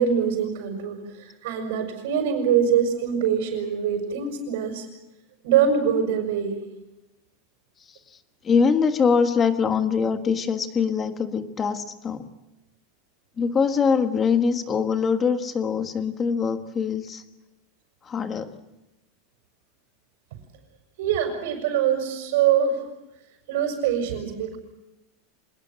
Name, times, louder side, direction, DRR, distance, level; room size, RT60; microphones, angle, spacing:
voice 1, 0.0-4.9 5.4-6.6 21.0-22.9 23.5-24.6, right 8 dB, 65° right, 2 dB, 6.1 m, -24 dB
voice 2, 8.4-12.3 13.4-17.2 18.0-18.5, left 6 dB, 20° left, 8 dB, 1.5 m, -23 dB
26.0 x 20.0 x 7.6 m, 0.97 s
supercardioid pair, 170°, 0 cm